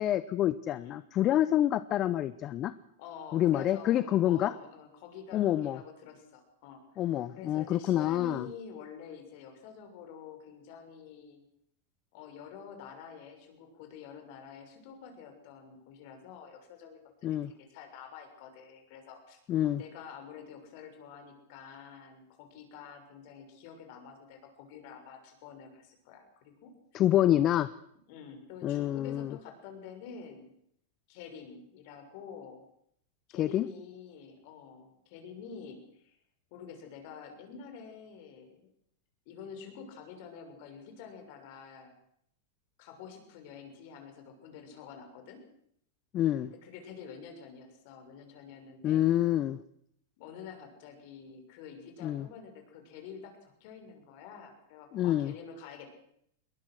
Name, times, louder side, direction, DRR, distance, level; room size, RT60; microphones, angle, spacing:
voice 1, 0.0-2.7 3.3-4.5 5.3-5.8 7.0-8.5 17.2-17.5 19.5-19.8 26.9-27.7 28.6-29.4 33.4-33.7 46.1-46.5 48.8-49.6 52.0-52.3 54.9-55.3, left 12 dB, 35° left, 16 dB, 0.7 m, -27 dB
voice 2, 3.0-6.8 7.3-11.4 12.1-19.4 19.8-26.7 28.1-30.5 31.1-32.6 33.3-36.2 36.5-38.7 39.3-42.0 42.8-45.4 46.5-49.0 50.2-55.9, left 6 dB, 55° left, 5 dB, 6.4 m, -48 dB
21.5 x 20.0 x 6.5 m, 0.71 s
hypercardioid pair, 120°, 0 cm